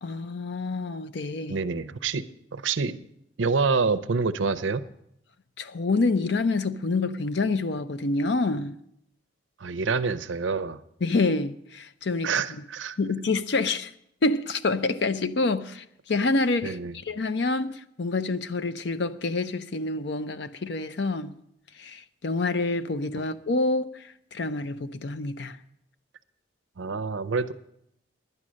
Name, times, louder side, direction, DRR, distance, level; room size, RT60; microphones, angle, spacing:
voice 1, 0.0-1.6 5.6-8.7 11.0-12.3 13.0-13.9 14.2-21.4 21.8-25.6, left 3 dB, 60° left, 0.5 m, -27 dB
voice 2, 1.5-2.2 2.5-3.0 3.4-4.8 9.6-10.8 12.2-13.0 16.6-16.9 26.8-27.5, right 4 dB, 75° right, 0.6 m, -27 dB
11.0 x 9.8 x 6.3 m
head